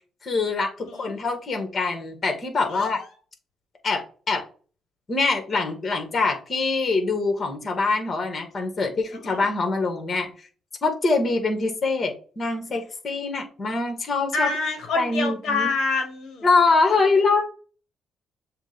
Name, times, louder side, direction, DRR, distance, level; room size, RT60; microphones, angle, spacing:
voice 1, 0.2-3.0 3.8-4.4 5.1-10.3 10.8-14.5 14.9-15.7 16.4-17.4, left 3 dB, 40° left, 4 dB, 2.1 m, -24 dB
voice 2, 14.3-16.4, left 4 dB, 70° left, 5 dB, 1.4 m, -26 dB
7.1 x 2.7 x 5.4 m, 0.39 s
cardioid pair, 90°, 0 cm